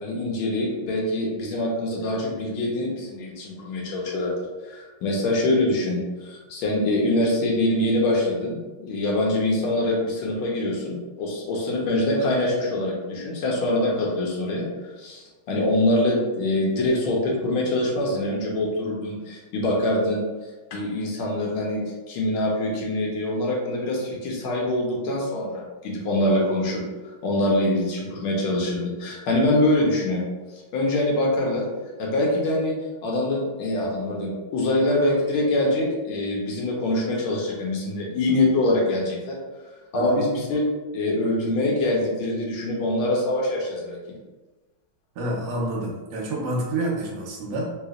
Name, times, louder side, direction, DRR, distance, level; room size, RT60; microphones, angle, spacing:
voice 1, 0.0-4.3 4.6-14.7 15.0-20.2 20.7-26.8 27.2-30.2 30.7-32.7 33.0-39.4 39.9-40.6 40.9-44.0, left 1 dB, 85° left, -2 dB, 1.6 m, -24 dB
voice 2, 45.1-47.8, right 1 dB, 65° right, -2 dB, 1.2 m, -28 dB
3.4 x 3.0 x 2.4 m, 1.2 s
omnidirectional pair, 2.2 m